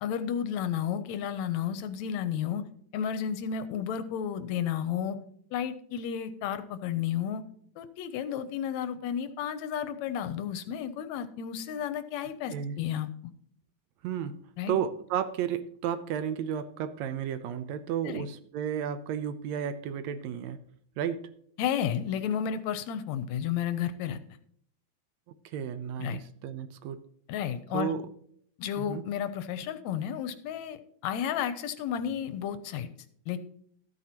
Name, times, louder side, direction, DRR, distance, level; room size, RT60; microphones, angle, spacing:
voice 1, 0.0-2.6 2.9-5.2 5.5-7.4 7.8-13.1 14.6-14.8 18.0-18.2 21.6-24.2 26.0-26.2 27.3-27.9 28.6-32.9 33.3-33.4, left 9 dB, 80° left, 11 dB, 1.8 m, -32 dB
voice 2, 14.0-14.4 14.7-20.6 21.0-21.3 25.5-27.0 27.7-28.0 28.8-29.0, right 8 dB, 75° right, 11 dB, 1.8 m, -33 dB
13.5 x 9.3 x 2.8 m, 0.64 s
omnidirectional pair, 3.4 m